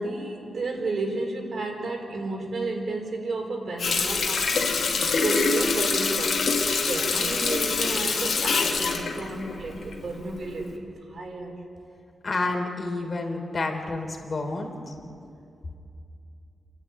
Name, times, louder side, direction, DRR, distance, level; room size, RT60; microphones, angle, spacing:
voice 1, 0.0-6.4 6.6-10.8 11.1-11.6, right 2 dB, 55° right, 2 dB, 4.5 m, -32 dB
Water tap faucet, 3.8-10.2 10.6-10.7, left 4 dB, 70° left, 2.5 m, -25 dB
voice 2, 12.2-14.9, left 2 dB, 40° left, 3 dB, 3.5 m, -29 dB
29.5 x 11.0 x 9.6 m, 2.5 s
wide cardioid pair, 125°, 0 cm